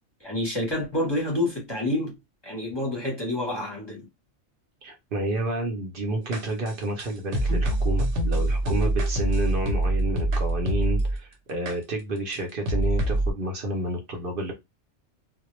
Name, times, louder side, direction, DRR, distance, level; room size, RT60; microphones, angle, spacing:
voice 1, 0.2-2.1 2.4-4.1, left 1 dB, 25° left, 0.7 m, -28 dB
voice 2, 4.8-14.5, right 1 dB, 60° right, 0.7 m, -30 dB
sound 1, 6.3-11.2 11.7-11.8 12.3-12.4 12.7-13.3, right 1 dB, 90° right, 1.0 m, -24 dB
2.1 x 2.0 x 2.9 m
omnidirectional pair, 1.2 m